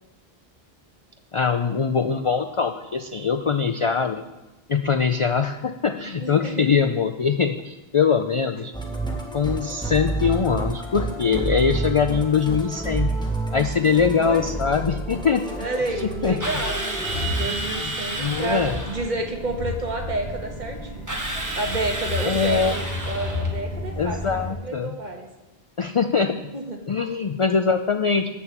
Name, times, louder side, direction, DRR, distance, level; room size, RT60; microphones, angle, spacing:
voice 1, 1.3-4.2 4.7-8.7 9.3-13.1 13.5-15.5 16.0-16.4 17.5-17.6 17.8-17.9 18.2-18.8 22.2-22.7 24.0-24.9 25.8-26.5 26.9-28.3, left 6 dB, 50° left, 7 dB, 0.4 m, -22 dB
voice 2, 6.2-6.7 14.2-14.6 15.6-21.1 21.5-25.3 26.5-26.8, right 2 dB, 50° right, 2 dB, 1.4 m, -30 dB
Musical instrument, 8.7-17.2, right 2 dB, 5° left, 1.2 m, -29 dB
Drill, 16.4-19.1 21.1-23.6, right 2 dB, 20° right, 1.3 m, -31 dB
sound 1, 17.0-24.5, left 2 dB, 70° left, 1.9 m, -32 dB
8.4 x 6.7 x 7.2 m, 1.0 s
omnidirectional pair, 1.0 m